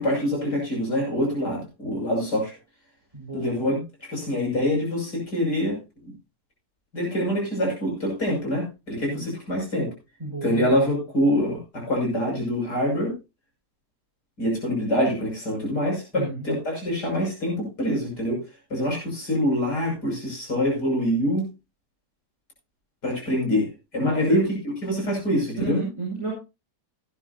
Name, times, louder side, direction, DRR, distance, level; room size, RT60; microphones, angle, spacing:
voice 1, 0.0-2.6 3.3-3.7 4.0-5.8 6.0-6.1 6.9-9.9 10.4-13.1 14.4-18.4 18.7-21.5 23.0-24.5 24.8-25.8, equal, 75° left, -1 dB, 6.7 m, -25 dB
voice 2, 3.1-3.6 9.1-9.2 10.2-10.7 16.1-16.4 24.0-24.4 25.6-26.3, right 1 dB, 20° right, -4 dB, 4.8 m, -31 dB
17.5 x 10.0 x 2.7 m, 0.27 s
omnidirectional pair, 1.8 m